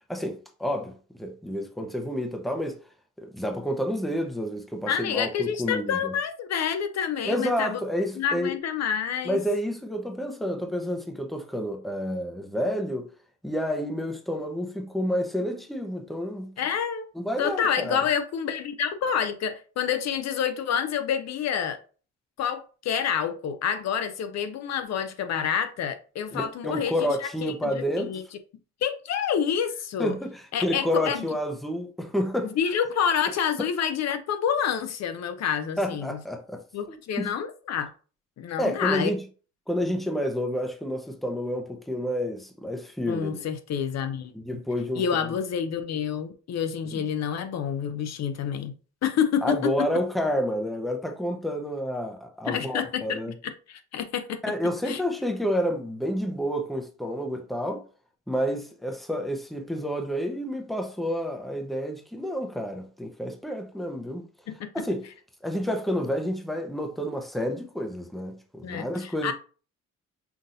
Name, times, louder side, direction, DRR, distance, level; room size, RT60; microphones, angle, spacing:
voice 1, 0.1-0.9 1.2-2.8 3.2-6.1 7.2-8.6 9.2-13.1 13.4-16.5 17.1-18.0 26.3-28.2 30.0-32.5 35.8-36.6 36.9-37.3 38.6-39.2 39.7-43.4 44.3-45.3 46.9-47.0 49.4-53.3 54.4-57.8 58.3-64.3 64.7-65.1 65.4-69.3, equal, ahead, 0.7 m, -29 dB
voice 2, 4.9-7.8 8.2-9.4 16.6-17.1 17.4-21.8 22.4-28.2 28.8-30.2 30.5-31.3 32.4-36.2 36.7-37.9 38.4-39.2 43.1-44.3 44.9-48.8 49.0-49.9 52.5-54.4 54.9-55.0 64.5-64.8 68.6-69.3, left 8 dB, 60° left, 0.5 m, -28 dB
5.8 x 2.6 x 2.6 m
cardioid pair, 90°, 30 cm